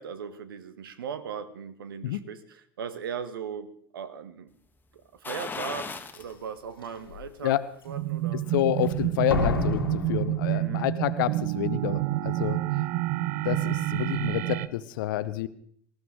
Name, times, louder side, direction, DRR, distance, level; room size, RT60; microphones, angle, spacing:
voice 1, 0.0-4.5 5.1-7.6 7.8-8.4 10.4-10.9, right 7 dB, 75° right, 14 dB, 1.0 m, -38 dB
sound 1, 5.2-6.3 6.7-6.8 8.3-9.1 9.5-9.6, left 4 dB, 15° left, 1.3 m, -37 dB
Slam, 6.1-6.2 6.8-7.2 9.3-11.2 11.4-11.5, left 4 dB, 85° left, 1.6 m, -30 dB
sound 2, 7.9-14.7, right 16 dB, 60° right, 0.5 m, -28 dB
voice 2, 8.5-12.6 13.4-15.5, left 14 dB, 65° left, 15 dB, 0.8 m, -28 dB
19.5 x 14.0 x 3.7 m, 0.62 s
figure-of-eight pair, 75°, 12 cm